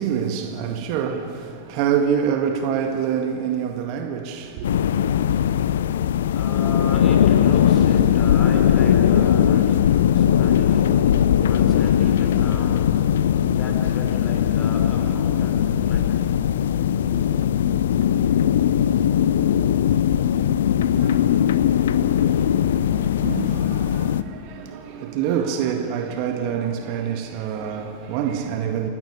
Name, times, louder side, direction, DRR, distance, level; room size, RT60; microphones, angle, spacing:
voice 1, 0.0-4.8 20.9-28.9, right 8 dB, 45° right, 1.9 m, -27 dB
sound 1, 4.6-24.2, left 9 dB, 60° left, 0.7 m, -19 dB
voice 2, 5.9-16.2 17.1-17.3, left 2 dB, 25° left, 4.9 m, -36 dB
29.5 x 13.0 x 9.8 m
figure-of-eight pair, 90°, 0 cm